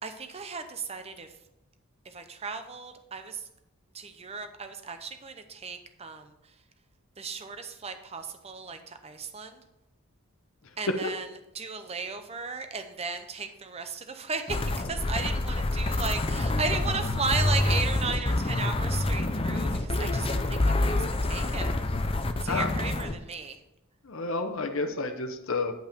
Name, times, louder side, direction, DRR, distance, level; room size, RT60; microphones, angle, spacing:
voice 1, 0.0-1.3 2.1-3.4 3.9-6.3 7.2-9.6 10.8-11.3 11.5-21.7 22.4-23.6, right 4 dB, 30° right, 8 dB, 0.7 m, -35 dB
sound 1, 14.5-23.1, left 2 dB, 25° left, 0.5 m, -27 dB
voice 2, 24.0-25.7, left 3 dB, 60° left, 5 dB, 0.8 m, -30 dB
9.0 x 5.5 x 5.1 m, 0.91 s
head